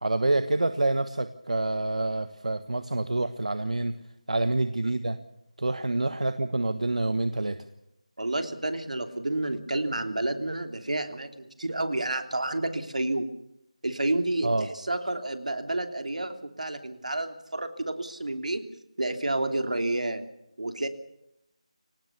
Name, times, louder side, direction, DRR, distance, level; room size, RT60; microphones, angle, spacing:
voice 1, 0.0-3.9 4.3-5.2 5.6-7.6 14.4-14.7, right 2 dB, 70° right, 10 dB, 1.4 m, -27 dB
voice 2, 8.2-13.3 13.8-18.7 19.0-20.2 20.6-20.9, right 2 dB, 90° right, 7 dB, 3.2 m, -30 dB
24.5 x 19.0 x 7.0 m, 0.82 s
figure-of-eight pair, 180°, 4 cm